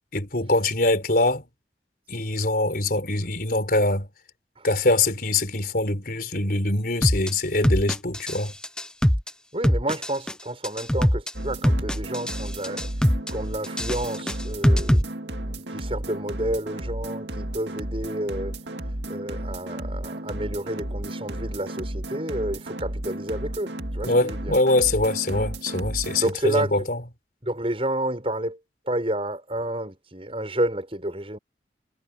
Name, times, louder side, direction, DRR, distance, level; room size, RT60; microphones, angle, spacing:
voice 1, 0.1-1.5 2.1-4.1 4.6-8.5 24.1-27.0, left 2 dB, 55° left, 4.6 m, -23 dB
sound 1, 7.0-7.3 7.6-8.4 8.6-9.3 9.6-10.3 10.6-11.3 11.6-12.4 12.6-13.3 13.6-15.0, equal, 5° left, 0.9 m, -21 dB
voice 2, 9.5-12.9 13.3-15.1 15.4-18.5 19.1-24.5 26.2-26.9 27.4-28.6 28.9-31.4, right 1 dB, 30° right, 7.4 m, -30 dB
sound 2, 11.3-26.3, right 1 dB, 85° right, 2.2 m, -33 dB
head